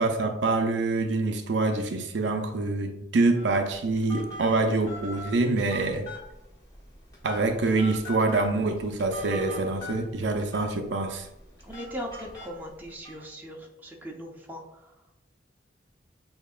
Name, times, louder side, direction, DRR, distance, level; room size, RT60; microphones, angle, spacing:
voice 1, 0.0-6.1 7.2-11.3, right 3 dB, 70° right, 5 dB, 0.5 m, -26 dB
Telephone, 3.3-13.2, equal, 20° left, 1.5 m, -43 dB
voice 2, 9.3-9.6 9.8-9.9 11.6-14.9, equal, 10° right, -1 dB, 0.8 m, -39 dB
6.7 x 2.8 x 2.4 m, 0.89 s
head